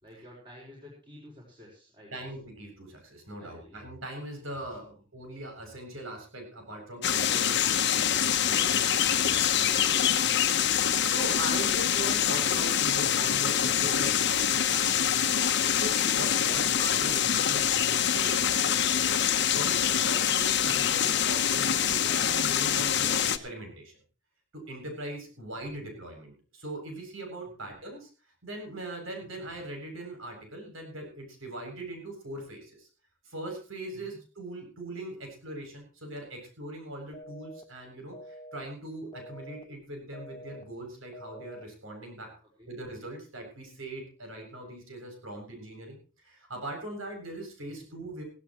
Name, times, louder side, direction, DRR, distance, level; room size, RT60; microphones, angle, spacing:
voice 1, 0.0-2.2 3.4-3.8 4.8-5.0 34.1-34.2 42.6-42.7 47.7-47.8, left 1 dB, 25° right, -4 dB, 5.5 m, -51 dB
voice 2, 2.1-15.2 15.7-19.2 19.5-23.9 24.5-28.1 28.4-32.9 33.2-42.3 42.7-48.2, right 1 dB, 85° right, 3 dB, 7.7 m, -40 dB
sound 1, 7.0-23.4, left 9 dB, 55° left, 1.2 m, -25 dB
sound 2, 37.1-37.6 38.1-38.6 39.1-39.6 40.1-40.6 41.1-41.6, equal, 20° left, 1.2 m, -46 dB
17.5 x 17.0 x 3.2 m, 0.36 s
head